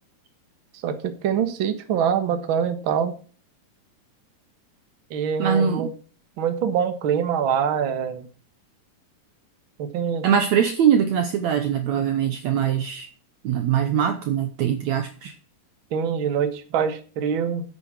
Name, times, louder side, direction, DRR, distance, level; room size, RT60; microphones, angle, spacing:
voice 1, 0.8-3.2 5.1-5.9 6.4-8.3 9.8-10.2 15.9-17.6, right 7 dB, 50° right, 1.6 m, -24 dB
voice 2, 5.4-5.9 10.2-13.1 13.4-15.3, right 8 dB, 70° right, 1.8 m, -22 dB
10.0 x 8.1 x 6.1 m
omnidirectional pair, 4.0 m